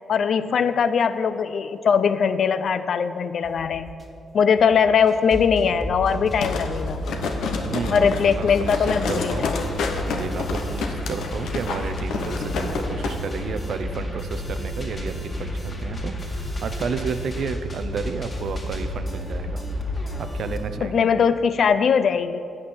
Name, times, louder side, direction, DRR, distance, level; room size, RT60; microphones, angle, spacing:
voice 1, 0.1-3.9 4.3-7.0 7.9-9.6 20.8-22.4, left 6 dB, 65° left, 13 dB, 0.4 m, -21 dB
sound 1, 3.4-4.1 4.6-4.9 5.4-6.3 7.1-7.2 7.5-7.6 8.0-8.6 9.1-9.5 9.9-10.9, right 2 dB, 30° right, 1.1 m, -44 dB
sound 2, 5.1-20.6, left 1 dB, 35° left, 1.9 m, -31 dB
sound 3, 6.4-13.2 13.5-13.6, left 4 dB, 85° left, 0.8 m, -29 dB
voice 2, 7.7-9.5 10.1-19.6 20.2-21.0, right 5 dB, 70° right, 10 dB, 0.5 m, -32 dB
8.8 x 6.1 x 7.1 m, 2.6 s
cardioid pair, 75°, 0 cm